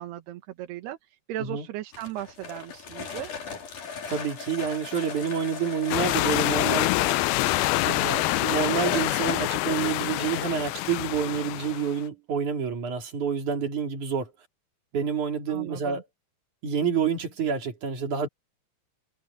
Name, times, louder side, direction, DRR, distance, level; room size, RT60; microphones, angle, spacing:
voice 1, 0.0-3.3 15.5-16.0, right 12 dB, 80° right, 3.4 m, -37 dB
sound 1, 1.9-9.5, left 5 dB, 50° left, 4.6 m, -37 dB
voice 2, 4.1-6.9 7.8-14.3 14.9-16.0 16.6-18.3, right 6 dB, 50° right, 4.7 m, -28 dB
sound 2, 5.9-12.0, left 18 dB, 80° left, 2.4 m, -26 dB
omnidirectional pair, 4.7 m